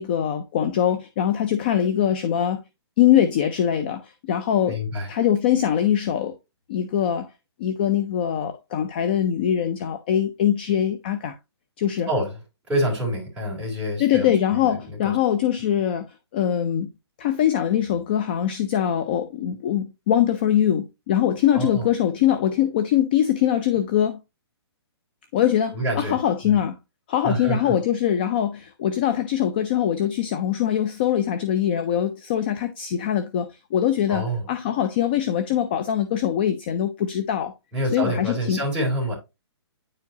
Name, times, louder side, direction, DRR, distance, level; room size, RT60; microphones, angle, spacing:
voice 1, 0.0-2.6 3.0-4.8 5.1-6.3 6.7-7.3 7.6-11.4 11.8-12.1 14.0-16.9 17.2-24.2 25.3-26.8 27.1-37.5 37.9-38.6, left 10 dB, 20° left, 0.4 m, -22 dB
voice 2, 4.7-5.1 12.1-12.4 12.7-15.2 21.5-21.9 25.7-26.2 26.4-26.6 27.2-27.7 34.1-34.5 37.7-39.1, right 1 dB, 5° right, 3.0 m, -27 dB
9.6 x 4.6 x 2.7 m
hypercardioid pair, 170°, 14 cm